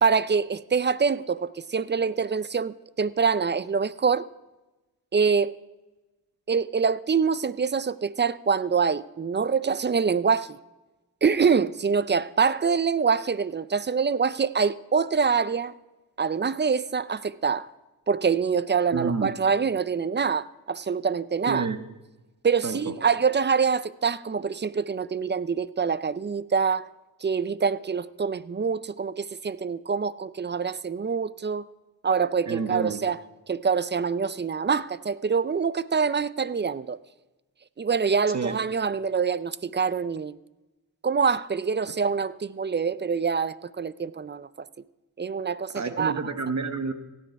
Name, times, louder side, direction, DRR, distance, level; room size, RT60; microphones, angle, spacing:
voice 1, 0.0-4.3 5.1-5.5 6.5-10.6 11.2-15.7 16.2-17.7 18.1-21.7 22.4-26.9 27.2-31.6 32.0-33.2 33.5-37.0 37.8-40.4 41.0-44.7 45.2-46.1, right 5 dB, 30° right, 0.4 m, -25 dB
voice 2, 18.9-19.3 21.5-21.8 22.6-22.9 32.5-33.0 38.3-38.6 45.7-46.9, right 4 dB, 45° right, 1.1 m, -29 dB
17.0 x 9.5 x 4.7 m
cardioid pair, 60°, 37 cm